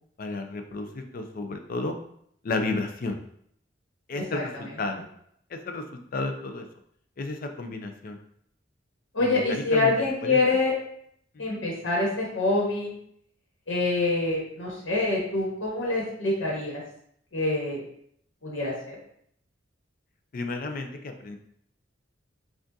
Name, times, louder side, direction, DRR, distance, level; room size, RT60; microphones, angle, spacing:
voice 1, 0.2-2.0 2.4-3.2 4.1-5.1 5.5-5.8 6.1-6.6 7.2-8.2 9.2-9.9 10.2-10.4 11.4-11.6 20.3-21.4, left 3 dB, 50° left, 6 dB, 0.5 m, -32 dB
voice 2, 9.1-10.7 11.4-12.9 13.7-16.8 17.3-17.8 18.4-19.0, left 2 dB, 75° left, -3 dB, 1.2 m, -26 dB
6.0 x 2.4 x 2.6 m, 0.69 s
head